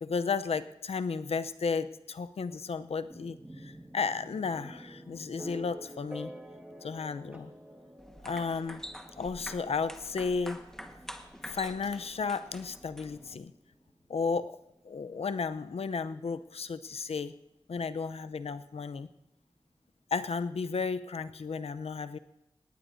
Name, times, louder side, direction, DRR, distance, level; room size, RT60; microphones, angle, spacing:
voice 1, 0.0-6.3 6.8-7.5 8.2-8.8 9.2-10.6 11.4-13.5 14.1-14.6 14.8-17.3 17.7-19.1 20.1-22.2, left 5 dB, 75° left, 12 dB, 0.7 m, -33 dB
sound 1, 3.1-16.9, right 1 dB, 15° right, 1.6 m, -50 dB
sound 2, 8.0-13.4, equal, 5° left, 1.4 m, -46 dB
19.5 x 18.0 x 2.7 m, 0.91 s
cardioid pair, 55°, 10 cm